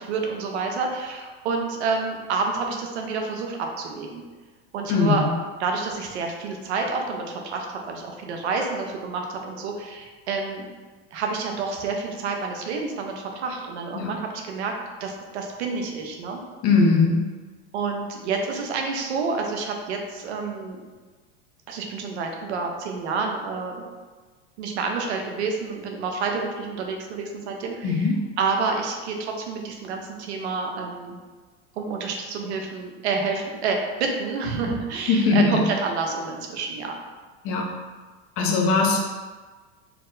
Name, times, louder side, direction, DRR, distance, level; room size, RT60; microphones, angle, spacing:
voice 1, 0.0-4.2 4.7-5.2 5.6-10.7 11.1-14.7 15.0-16.4 17.7-20.8 21.7-23.8 24.6-28.1 28.4-31.2 31.8-36.9, right 4 dB, 85° right, 2 dB, 0.8 m, -29 dB
voice 2, 4.9-5.3 13.9-14.1 16.6-17.2 27.8-28.2 35.1-35.6 37.4-37.7 38.4-39.0, left 3 dB, 45° left, 0 dB, 0.7 m, -20 dB
4.5 x 2.0 x 3.8 m, 1.4 s
supercardioid pair, 110°, 32 cm